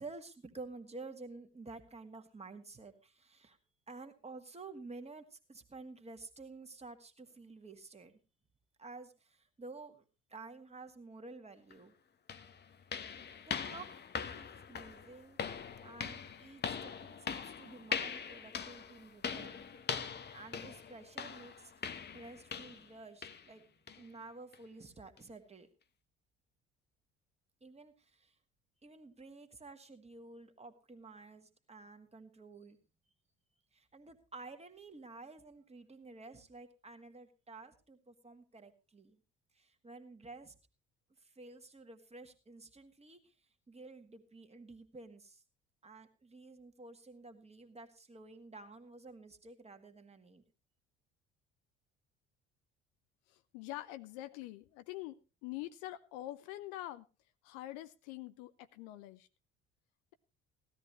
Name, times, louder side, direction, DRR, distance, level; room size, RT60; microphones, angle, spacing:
voice 1, 0.0-3.6 3.9-8.2 8.8-10.0 10.3-11.9 13.4-13.9 14.3-15.4 15.8-19.7 20.3-23.6 24.0-25.7 27.6-28.4 28.8-32.8 33.7-39.2 39.5-40.5 41.2-45.4 45.8-50.4, right 3 dB, 20° right, 6 dB, 2.0 m, -51 dB
sound 1, 11.7-11.8 12.3-22.9 23.2-23.5 23.9-24.1 24.5-24.6 25.2-25.3, left 7 dB, 30° left, 1.0 m, -42 dB
voice 2, 53.3-57.0 57.4-59.3, left 15 dB, 60° left, 12 dB, 0.8 m, -45 dB
16.0 x 13.0 x 3.1 m, 0.30 s
figure-of-eight pair, 55°, 35 cm